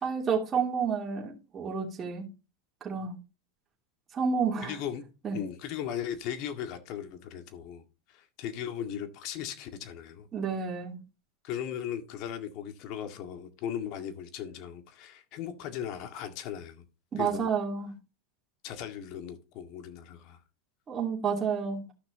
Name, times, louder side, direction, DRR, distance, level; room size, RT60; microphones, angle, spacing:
voice 1, 0.0-2.3 2.8-3.2 4.1-4.8 5.2-5.4 10.3-11.0 17.1-17.9 20.9-21.8, right 6 dB, 25° right, 3.0 m, -30 dB
voice 2, 4.6-5.0 5.3-10.3 11.4-16.8 17.2-17.5 18.6-20.4, left 9 dB, 50° left, 1.9 m, -37 dB
14.0 x 6.1 x 2.9 m
supercardioid pair, 130°, 0 cm